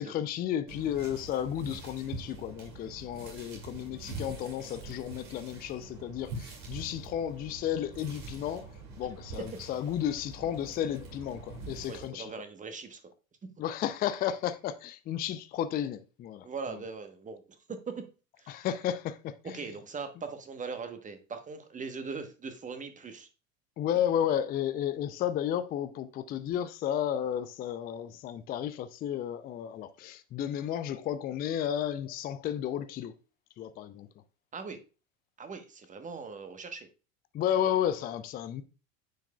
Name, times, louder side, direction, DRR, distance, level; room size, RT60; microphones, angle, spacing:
voice 1, 0.0-8.6 9.0-12.3 13.6-16.5 18.5-19.6 23.8-33.1 33.6-34.1 37.3-38.6, left 10 dB, 25° left, 0.4 m, -33 dB
sound 1, 0.7-12.1, right 3 dB, 55° right, 2.4 m, -45 dB
voice 2, 11.9-13.0 16.4-17.4 17.7-18.0 18.4-18.6 19.5-23.3 34.5-34.8 35.4-36.9, right 5 dB, 20° right, 1.0 m, -40 dB
9.1 x 4.7 x 2.2 m
figure-of-eight pair, 80°, 41 cm